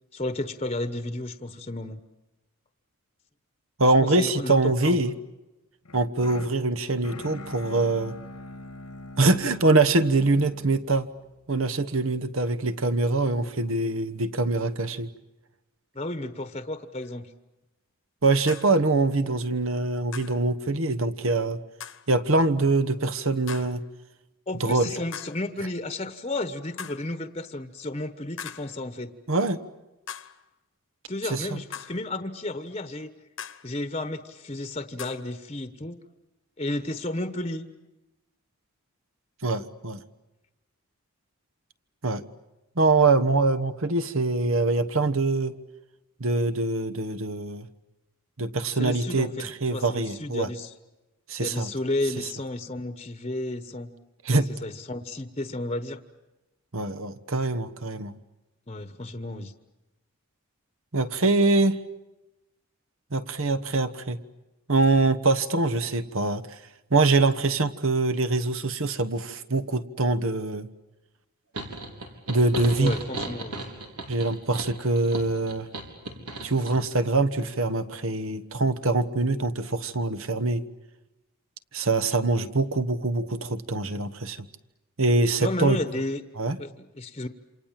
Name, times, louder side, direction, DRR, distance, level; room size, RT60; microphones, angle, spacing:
voice 1, 0.1-2.0 4.0-4.5 4.8-5.0 15.9-17.3 24.5-29.1 31.1-33.1 33.6-36.0 36.6-37.7 48.7-50.7 51.4-53.9 54.3-56.0 58.7-59.5 72.8-73.7 85.4-86.2 86.6-87.3, left 2 dB, 25° left, 10 dB, 1.1 m, -32 dB
voice 2, 3.8-5.1 5.9-8.1 9.2-11.1 11.5-15.1 18.2-21.6 22.1-23.8 24.6-24.9 29.3-29.6 31.3-31.6 39.4-40.0 42.0-42.2 42.8-45.5 46.2-47.7 48.4-50.5 51.3-51.7 54.3-54.5 56.7-58.1 60.9-61.8 63.1-64.2 64.7-66.4 66.9-70.7 72.3-72.9 74.1-75.7 76.4-80.6 81.7-84.4 85.0-85.8 86.4-86.6, right 3 dB, 65° right, 13 dB, 1.3 m, -24 dB
sound 1, 5.8-12.0, left 2 dB, 90° left, 1.6 m, -43 dB
sound 2, 17.0-17.1 18.5-18.8 20.1-20.4 21.8-22.1 23.5-23.8 25.1-25.5 26.8-27.1 28.4-28.8 30.1-30.4 31.7-32.1 33.4-33.7 35.0-35.3, left 8 dB, 60° left, 1.2 m, -40 dB
sound 3, 71.5-76.8, right 2 dB, 90° right, 4.3 m, -36 dB
28.5 x 26.5 x 7.5 m, 1.0 s
head